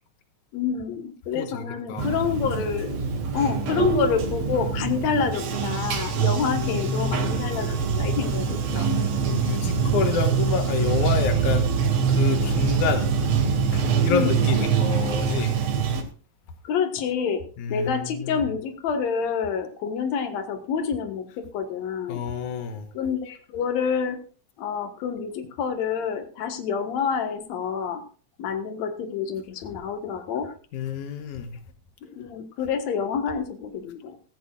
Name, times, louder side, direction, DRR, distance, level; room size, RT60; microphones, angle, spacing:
voice 1, 0.5-3.1 3.3-8.9 14.1-14.4 16.6-17.4 17.7-22.2 22.9-24.2 24.6-28.0 28.4-30.5 32.0-34.2, left 6 dB, 65° left, 6 dB, 2.7 m, -28 dB
voice 2, 1.3-2.1 6.4-7.3 9.2-11.7 12.1-13.1 13.7-15.6 17.6-18.4 22.1-22.9 30.7-31.6, left 7 dB, 85° left, 7 dB, 2.6 m, -29 dB
Bathtub (filling or washing), 2.0-16.0, right 6 dB, 60° right, 2.6 m, -24 dB
16.5 x 14.5 x 2.4 m, 0.38 s
omnidirectional pair, 3.4 m